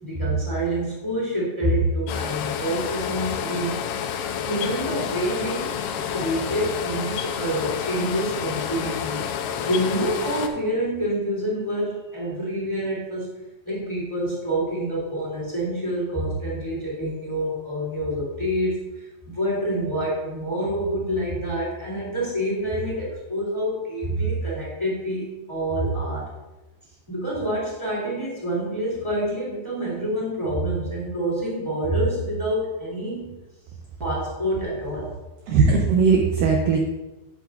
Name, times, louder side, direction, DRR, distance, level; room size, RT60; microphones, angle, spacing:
voice 1, 0.0-3.8 4.4-9.2 9.6-13.3 13.6-26.3 27.1-33.4 34.0-35.1, right 1 dB, 10° left, -6 dB, 2.2 m, -27 dB
sound 1, 2.1-10.5, left 8 dB, 80° left, 2.5 m, -29 dB
voice 2, 35.5-36.8, right 5 dB, 85° right, 1 dB, 1.9 m, -18 dB
11.5 x 8.6 x 2.5 m, 1.1 s
omnidirectional pair, 5.0 m